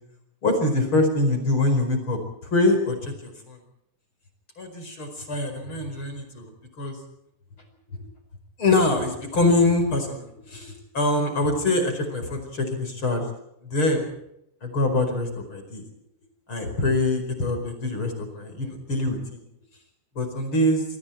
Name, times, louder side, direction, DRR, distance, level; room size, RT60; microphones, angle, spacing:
voice 1, 0.4-3.6 4.6-6.5 6.8-7.0 8.6-13.2 13.6-14.1 14.6-15.8 16.5-19.4 20.2-20.8, left 2 dB, 40° left, 6 dB, 5.5 m, -24 dB
28.0 x 24.0 x 4.5 m, 0.79 s
omnidirectional pair, 3.7 m